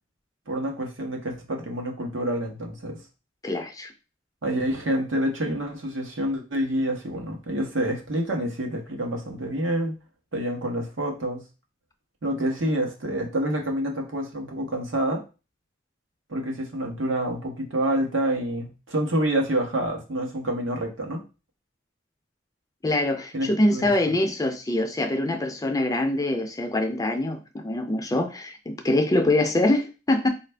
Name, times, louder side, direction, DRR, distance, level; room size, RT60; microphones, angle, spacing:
voice 1, 0.5-3.0 4.4-9.9 10.3-11.4 12.2-15.2 16.3-21.2 23.3-24.1, right 1 dB, 85° right, 2 dB, 0.9 m, -27 dB
voice 2, 3.4-3.9 22.8-30.3, left 1 dB, 20° left, 6 dB, 0.4 m, -24 dB
4.2 x 2.5 x 3.3 m, 0.31 s
head